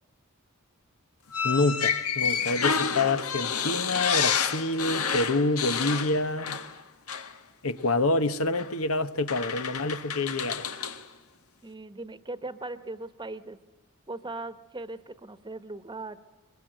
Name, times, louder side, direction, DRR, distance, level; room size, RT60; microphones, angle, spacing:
sound 1, 1.3-6.8 7.1-7.3 8.5-8.7 9.3-11.0, left 6 dB, 85° left, 1.6 m, -29 dB
voice 1, 1.4-6.6 7.6-10.7, left 2 dB, 70° left, 1.2 m, -27 dB
voice 2, 11.6-13.6 14.1-16.2, right 2 dB, 20° right, 1.2 m, -39 dB
23.0 x 22.5 x 9.1 m
head